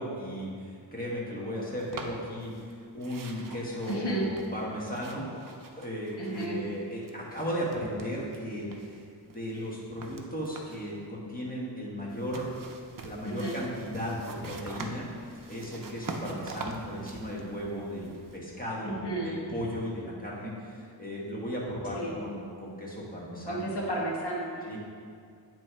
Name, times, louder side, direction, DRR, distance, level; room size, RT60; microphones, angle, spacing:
voice 1, 0.0-2.5 2.9-5.3 5.8-8.7 9.2-12.5 13.0-19.0 19.2-23.7 24.7-24.8, equal, 20° left, -5 dB, 1.6 m, -36 dB
sound 1, 1.8-2.7 3.0-6.8 7.0-8.4 8.7-10.9 12.1-18.4, right 3 dB, 50° right, 0.6 m, -44 dB
voice 2, 3.9-4.3 6.2-6.6 13.2-13.6 18.8-19.4 21.9-22.1 23.5-24.8, right 1 dB, 65° left, -3 dB, 1.5 m, -33 dB
9.0 x 3.2 x 4.5 m, 2.3 s
wide cardioid pair, 60°, 43 cm